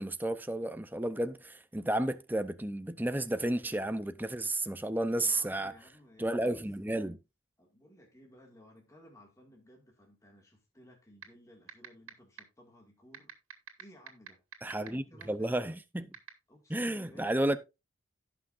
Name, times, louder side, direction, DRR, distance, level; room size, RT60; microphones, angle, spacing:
voice 1, 0.0-5.7 6.2-7.2 14.6-16.1 16.7-17.6, right 1 dB, 10° right, 0.6 m, -32 dB
voice 2, 5.2-6.6 7.6-13.3 13.8-14.4 14.9-15.5 16.5-17.6, equal, 15° left, 2.0 m, -58 dB
sound 1, 11.2-11.3 11.7-12.1 12.4-12.5 13.1-14.9 15.2-15.3 16.1-16.3, right 8 dB, 80° right, 2.1 m, -42 dB
17.5 x 6.0 x 2.5 m
head